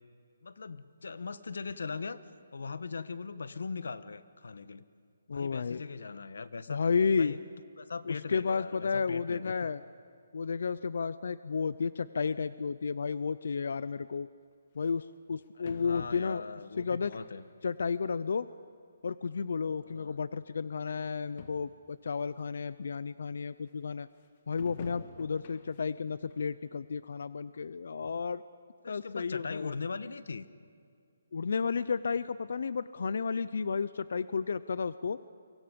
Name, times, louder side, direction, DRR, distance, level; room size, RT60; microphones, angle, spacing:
voice 1, 0.4-2.2 2.5-4.8 5.3-6.8 7.2-7.4 7.8-9.7 15.6-17.4 19.8-20.2 28.8-30.5, left 4 dB, 80° left, 14 dB, 1.2 m, -40 dB
voice 2, 5.3-5.8 6.7-7.4 8.1-9.8 10.3-14.3 14.7-16.4 16.8-17.1 17.6-18.5 19.0-24.1 24.5-28.4 28.9-29.8 31.3-35.2, left 5 dB, 65° left, 16 dB, 0.6 m, -32 dB
sound 1, 13.7-13.8 14.8-14.9 15.7-16.6 17.1-17.6 18.0-18.2 19.1-19.2 19.4-19.5 20.3-20.4 20.7-20.8 21.1-21.2 21.4-21.8 22.4-22.5 24.6-25.9 26.3-26.5 27.0-27.1, left 6 dB, 35° left, 1.6 m, -48 dB
29.5 x 24.5 x 5.3 m, 2.3 s
hypercardioid pair, 170°, 0 cm